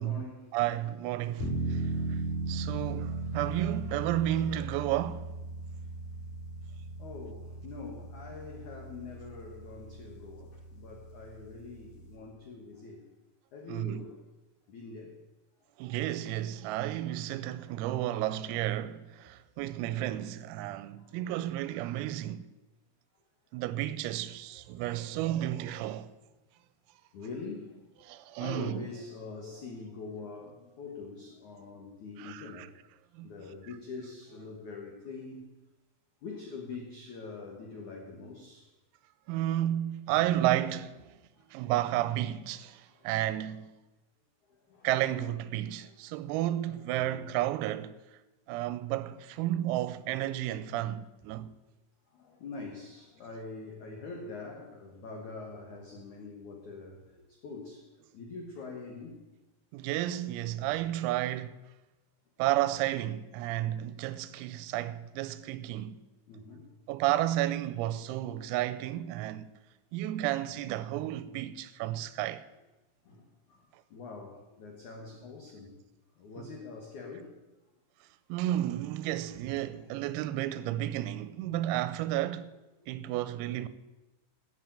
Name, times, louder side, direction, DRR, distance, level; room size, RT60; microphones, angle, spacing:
voice 1, 0.0-0.5 1.8-2.4 2.7-3.2 5.7-5.8 7.0-13.1 13.5-14.2 14.7-15.2 20.9-21.2 24.7-24.8 25.1-25.2 27.1-32.7 33.2-35.4 36.2-38.7 41.4-41.7 42.9-43.1 44.7-44.9 46.6-47.4 51.3-51.4 52.1-57.8 58.1-59.2 66.3-66.7 73.0-75.8 76.2-77.3 79.8-80.0, left 4 dB, 80° left, 1.7 m, -44 dB
voice 2, 0.5-2.2 2.5-5.3 13.7-14.1 15.8-22.5 23.5-26.1 28.1-28.8 32.2-32.7 33.1-33.3 39.3-41.0 41.5-43.7 44.8-47.9 48.5-51.5 59.7-61.6 62.4-66.0 66.9-69.5 69.9-72.4 76.4-76.5 78.3-82.5 82.9-83.7, right 13 dB, 90° right, 3.4 m, -32 dB
sound 1, 1.4-12.1, right 2 dB, 45° left, 2.8 m, -37 dB
13.0 x 7.7 x 9.0 m
omnidirectional pair, 6.0 m